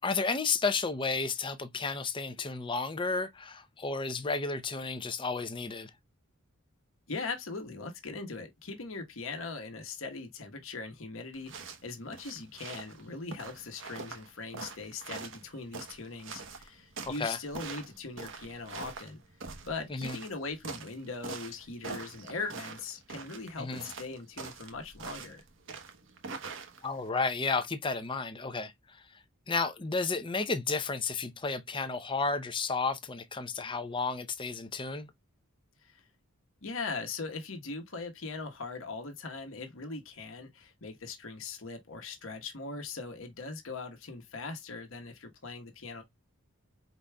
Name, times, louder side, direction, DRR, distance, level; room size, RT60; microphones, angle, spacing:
voice 1, 0.0-5.9 17.2-17.4 19.9-20.2 23.6-23.8 26.8-28.7 29.5-35.1, left 4 dB, 25° left, 0.6 m, -32 dB
voice 2, 7.1-19.2 19.7-25.4 35.8-36.0 36.6-46.0, left 3 dB, 70° left, 1.1 m, -40 dB
sound 1, 11.3-27.1, right 4 dB, 60° right, 0.9 m, -44 dB
4.8 x 3.9 x 2.2 m
head